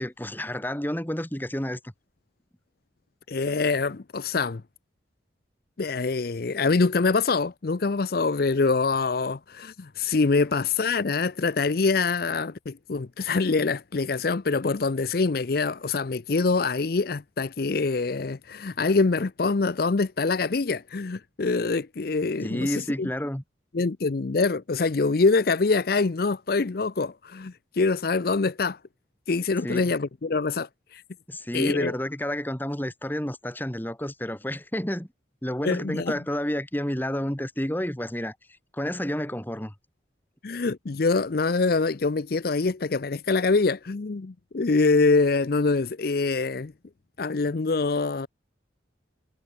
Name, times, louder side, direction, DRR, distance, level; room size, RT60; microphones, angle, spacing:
voice 1, 0.0-1.9 22.4-23.4 29.6-29.9 31.3-35.1 35.4-38.3 38.7-39.7, equal, 10° left, 1.7 m, -30 dB
voice 2, 3.3-4.6 5.8-23.1 23.7-28.8 29.3-31.0 31.5-31.9 35.6-36.1 40.4-46.7 47.2-48.3, left 4 dB, 50° left, 0.5 m, -25 dB
head